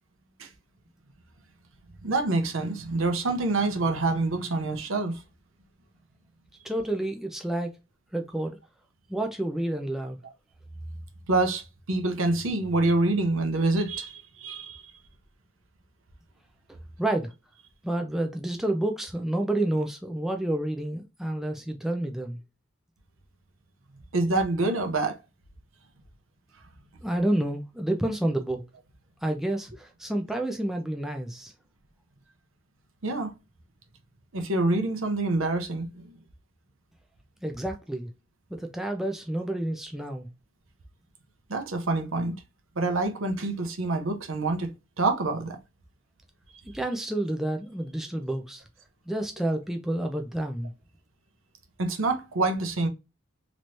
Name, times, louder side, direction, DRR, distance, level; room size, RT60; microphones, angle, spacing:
voice 1, 2.0-5.2 11.3-11.6 11.9-14.8 24.1-25.2 33.0-33.3 34.3-36.1 41.5-42.3 42.8-45.6 51.8-52.9, right 2 dB, 70° right, 0.8 m, -26 dB
voice 2, 6.6-7.8 8.1-8.6 9.1-10.2 16.7-17.3 17.8-22.4 27.0-28.6 29.2-31.5 37.4-38.1 38.5-40.3 46.7-48.6 49.1-50.7, right 1 dB, ahead, 0.4 m, -29 dB
3.1 x 3.1 x 2.6 m
head